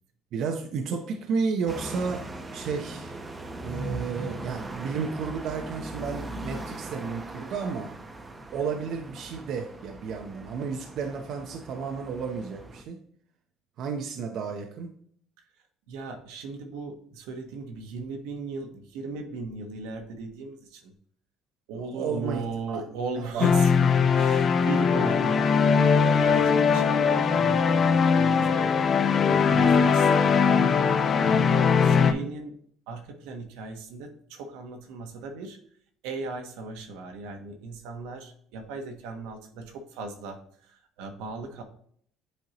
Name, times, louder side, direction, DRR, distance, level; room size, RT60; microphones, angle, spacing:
voice 1, 0.3-2.3 2.5-3.2 3.6-7.9 8.5-13.0 13.8-14.9 21.7-22.8 23.1-23.5, right 5 dB, 60° right, 3 dB, 0.7 m, -32 dB
sound 1, 1.7-12.8, right 1 dB, 20° right, 0.8 m, -39 dB
voice 2, 15.9-20.9 21.7-25.4 25.9-28.7 29.1-30.4 31.1-31.4 31.8-32.5 32.9-35.6 36.0-40.4 40.7-41.6, right 3 dB, 85° right, 5 dB, 1.1 m, -37 dB
sound 2, 23.4-32.1, left 6 dB, 40° left, 0.6 m, -21 dB
8.3 x 4.4 x 2.9 m, 0.62 s
cardioid pair, 105°, 0 cm